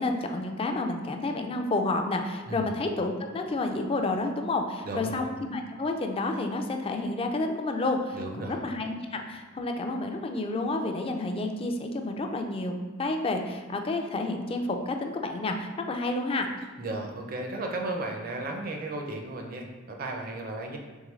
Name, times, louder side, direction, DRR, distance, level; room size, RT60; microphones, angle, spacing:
voice 1, 0.0-12.7 13.0-16.5, left 2 dB, 30° left, 4 dB, 0.3 m, -30 dB
voice 2, 4.8-5.2 8.1-8.6 16.8-20.8, right 2 dB, 45° right, 2 dB, 0.5 m, -34 dB
3.6 x 3.3 x 3.1 m, 1.4 s
head